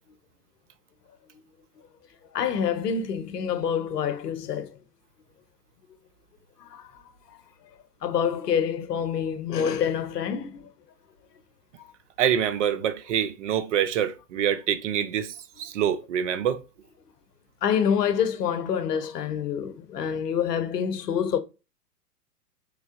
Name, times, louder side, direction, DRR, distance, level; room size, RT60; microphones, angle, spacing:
voice 1, 2.3-4.7 6.6-6.9 7.3-7.4 8.0-10.7 17.6-21.4, left 7 dB, 75° left, 0.7 m, -27 dB
voice 2, 12.2-16.6, right 9 dB, 50° right, 0.4 m, -26 dB
3.5 x 3.3 x 2.4 m
hypercardioid pair, 110°, 47 cm